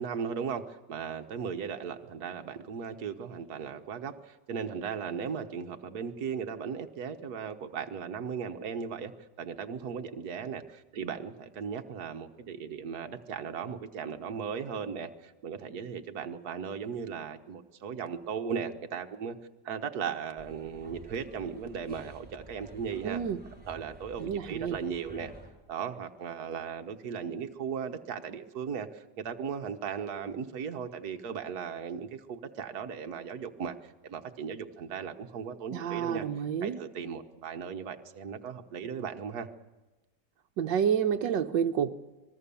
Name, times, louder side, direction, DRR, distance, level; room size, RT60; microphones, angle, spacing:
voice 1, 0.0-19.4 19.6-23.2 23.7-25.3 25.7-36.3 36.6-39.5, right 6 dB, 60° right, 6 dB, 1.7 m, -37 dB
sound 1, 20.4-25.5, right 1 dB, 5° right, 5.4 m, -50 dB
voice 2, 23.0-23.4 24.2-24.8 35.7-36.8 40.6-41.9, right 8 dB, 85° right, 8 dB, 1.6 m, -29 dB
26.0 x 20.0 x 7.0 m, 1.1 s
omnidirectional pair, 1.9 m